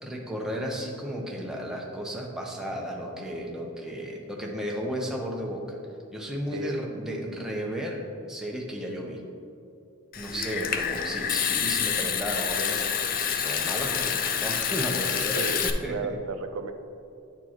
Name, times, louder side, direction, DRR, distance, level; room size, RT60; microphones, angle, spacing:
voice 1, 0.0-5.8 6.1-8.0 8.3-9.2 10.1-16.0, equal, ahead, -2 dB, 0.6 m, -34 dB
Water tap faucet / Sink (filling or washing) / Trickle dribble, 10.1-15.7, left 8 dB, 40° left, 0.3 m, -28 dB
voice 2, 15.3-16.7, right 3 dB, 70° right, 7 dB, 0.5 m, -33 dB
9.4 x 4.4 x 2.9 m, 2.6 s
head